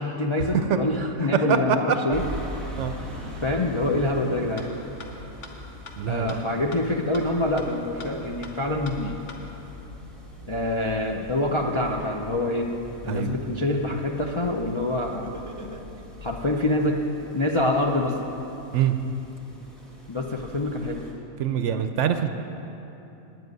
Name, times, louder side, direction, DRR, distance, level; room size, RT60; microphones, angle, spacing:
voice 1, 0.0-2.2 3.4-4.7 6.1-9.1 10.5-12.7 13.0-15.8 16.2-17.0 17.3-18.2 20.1-21.0, left 2 dB, 35° left, 0 dB, 0.4 m, -26 dB
sound 1, 2.1-21.1, equal, ahead, 1.7 m, -42 dB
sound 2, 4.1-4.2 4.6-4.7 5.0-5.1 5.4-5.5 5.9-6.0 6.3-6.4 6.7-6.8 7.1-7.2 7.6-7.7 8.0-8.1 8.4-8.5 8.9-9.0 9.3-9.4, left 4 dB, 60° left, 1.4 m, -41 dB
voice 2, 6.0-6.4 13.1-13.4 18.7-19.0 21.4-22.3, right 9 dB, 65° right, 8 dB, 0.8 m, -24 dB
Laughter, 11.9-13.3 15.1-16.3, right 2 dB, 25° right, 0.4 m, -44 dB
9.2 x 7.8 x 9.4 m, 3.0 s
omnidirectional pair, 1.4 m